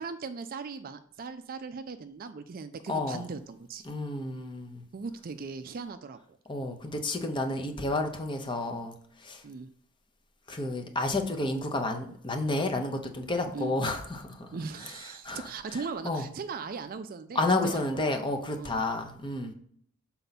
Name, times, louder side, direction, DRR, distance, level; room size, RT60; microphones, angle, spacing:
voice 1, 0.0-3.8 4.9-6.4 9.4-9.7 13.5-13.7 14.5-18.2 18.6-18.8, right 5 dB, 40° right, 0.4 m, -39 dB
voice 2, 2.9-3.2 3.9-4.8 6.5-8.9 9.2-9.4 10.5-14.5 15.2-15.5 16.0-16.2 17.3-19.5, left 2 dB, 20° left, 0.8 m, -30 dB
6.9 x 4.4 x 4.1 m
head